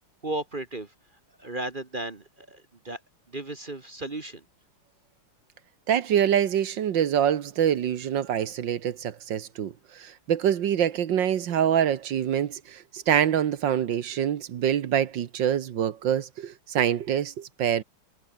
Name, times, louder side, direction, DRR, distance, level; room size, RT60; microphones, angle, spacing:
voice 1, 0.2-0.9 1.4-3.0 3.3-4.4, right 2 dB, 30° right, 1.3 m, -35 dB
voice 2, 5.9-17.8, right 9 dB, 60° right, 1.7 m, -25 dB
omnidirectional pair, 2.4 m